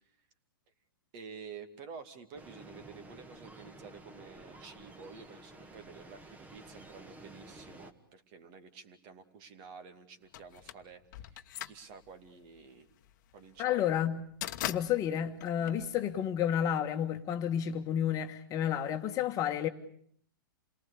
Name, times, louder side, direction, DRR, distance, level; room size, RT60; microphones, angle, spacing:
voice 1, 1.1-12.9 13.3-13.8 15.6-15.9, right 5 dB, 40° right, 2.5 m, -50 dB
sound 1, 2.3-7.9, right 2 dB, 15° right, 1.8 m, -52 dB
sound 2, 10.3-16.5, left 14 dB, 55° left, 1.2 m, -42 dB
voice 2, 13.6-14.2 14.7-19.7, left 9 dB, 30° left, 1.5 m, -31 dB
28.0 x 19.0 x 8.5 m
hypercardioid pair, 125°, 12 cm